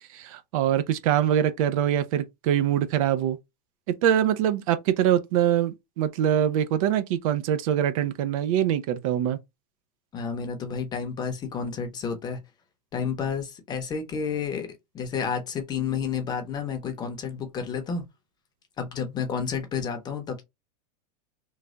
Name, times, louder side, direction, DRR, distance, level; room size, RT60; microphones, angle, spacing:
voice 1, 0.1-3.4 4.0-9.4, right 10 dB, 55° right, 0.5 m, -24 dB
voice 2, 10.1-12.4 12.9-14.7 14.9-18.0 18.8-20.4, left 6 dB, 20° left, 0.7 m, -30 dB
3.1 x 2.2 x 3.7 m
supercardioid pair, 150°, 21 cm